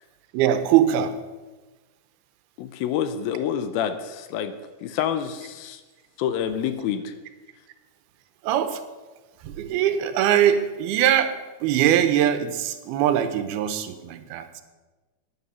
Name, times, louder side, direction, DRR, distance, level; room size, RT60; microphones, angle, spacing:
voice 1, 0.3-1.2 8.4-8.8 9.4-14.6, right 10 dB, 90° right, 10 dB, 2.7 m, -22 dB
voice 2, 2.6-4.5 4.8-5.8 6.2-7.2, left 9 dB, 80° left, 10 dB, 2.4 m, -27 dB
11.0 x 9.8 x 5.6 m, 1.2 s
omnidirectional pair, 4.5 m